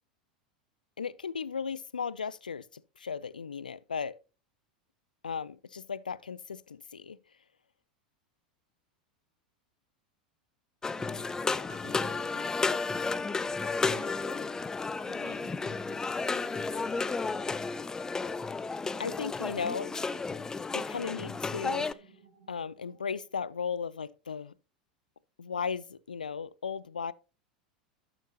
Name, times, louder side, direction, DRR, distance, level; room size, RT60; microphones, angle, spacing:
voice 1, 1.0-4.2 5.2-7.2 19.0-19.9 20.7-22.1 22.5-24.5 25.4-27.1, left 6 dB, 85° left, 0.3 m, -36 dB
sound 1, 10.8-21.9, left 4 dB, 15° left, 0.4 m, -32 dB
voice 2, 11.0-14.6 15.1-17.1, right 5 dB, 70° right, 2.2 m, -53 dB
sound 2, 19.5-23.7, right 6 dB, 90° right, 2.6 m, -58 dB
11.5 x 6.8 x 2.8 m
figure-of-eight pair, 85°, 4 cm